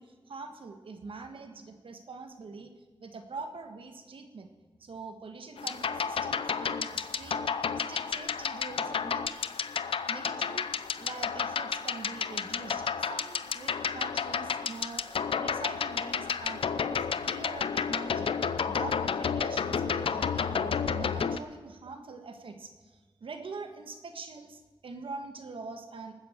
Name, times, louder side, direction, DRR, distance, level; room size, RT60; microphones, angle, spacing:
voice 1, 0.0-2.7 3.0-4.5 4.8-7.4 7.8-9.5 10.1-15.1 15.4-18.3 18.7-26.1, right 4 dB, 80° right, 6 dB, 1.6 m, -44 dB
sound 1, 5.6-21.4, left 6 dB, 85° left, 0.6 m, -31 dB
19.5 x 9.8 x 7.3 m, 1.3 s
wide cardioid pair, 130°, 9 cm